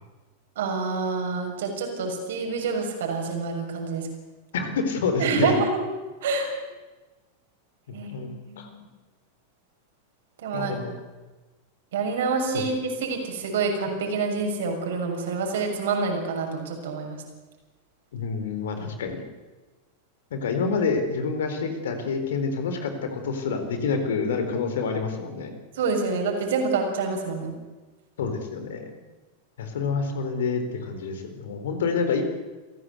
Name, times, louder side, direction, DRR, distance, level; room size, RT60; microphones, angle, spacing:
voice 1, 0.5-4.1 5.2-5.8 6.2-6.5 7.9-8.7 10.4-10.8 11.9-17.1 25.7-27.5, right 4 dB, 60° right, 3 dB, 6.7 m, -27 dB
voice 2, 4.5-5.5 8.1-8.3 8.6-8.7 10.5-10.9 12.5-12.6 18.1-19.2 20.3-25.5 28.2-28.9 29.6-32.2, left 4 dB, 60° left, 7 dB, 4.2 m, -27 dB
28.5 x 17.5 x 8.2 m, 1.2 s
figure-of-eight pair, 90°, 0 cm